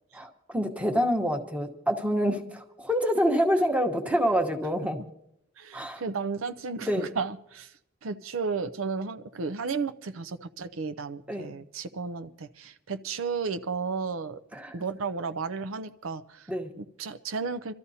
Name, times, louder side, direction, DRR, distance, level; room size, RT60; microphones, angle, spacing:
voice 1, 0.1-5.0 5.7-6.0 6.8-7.1 11.3-11.5 14.5-14.9 16.5-16.7, equal, 5° right, 4 dB, 1.1 m, -27 dB
voice 2, 5.6-7.7 8.0-14.4 14.7-16.4 16.8-17.7, right 5 dB, 90° right, 11 dB, 0.6 m, -33 dB
27.0 x 13.0 x 2.8 m, 0.77 s
head